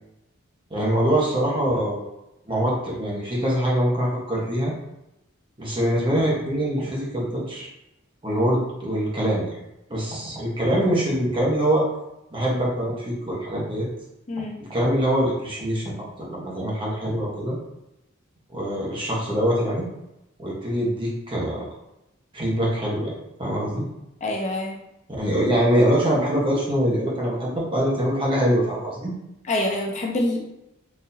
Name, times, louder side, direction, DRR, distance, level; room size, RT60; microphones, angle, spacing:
voice 1, 0.7-2.0 2.5-4.7 5.6-7.7 8.2-9.6 9.9-11.8 12.3-13.9 14.7-17.6 18.5-19.9 20.4-21.6 22.3-23.1 23.4-23.8 25.1-29.1, equal, 25° right, -4 dB, 1.0 m, -23 dB
voice 2, 14.3-14.6 24.2-24.8 29.5-30.5, left 1 dB, 35° left, 0 dB, 0.4 m, -26 dB
4.0 x 2.7 x 2.7 m, 0.89 s
head